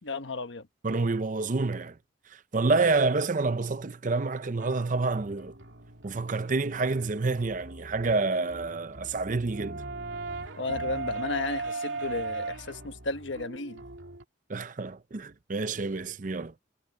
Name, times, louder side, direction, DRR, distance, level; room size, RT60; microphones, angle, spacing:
voice 1, 0.0-0.7 10.6-13.8, left 3 dB, 65° left, 1.3 m, -33 dB
voice 2, 0.8-2.0 2.3-5.5 6.0-9.8 14.5-16.5, right 3 dB, 40° right, 0.6 m, -28 dB
sound 1, 4.6-14.2, right 3 dB, 70° right, 2.3 m, -38 dB
head